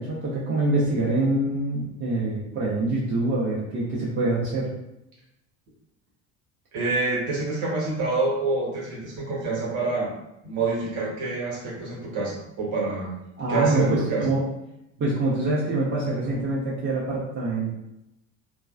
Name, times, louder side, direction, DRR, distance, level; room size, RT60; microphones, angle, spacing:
voice 1, 0.0-4.7 13.4-14.4 15.0-17.8, right 2 dB, 25° right, -6 dB, 0.7 m, -25 dB
voice 2, 6.7-10.1 10.4-13.1 13.5-14.3, right 3 dB, 45° right, -3 dB, 1.0 m, -27 dB
3.1 x 2.1 x 2.3 m, 0.88 s
figure-of-eight pair, 65°, 42 cm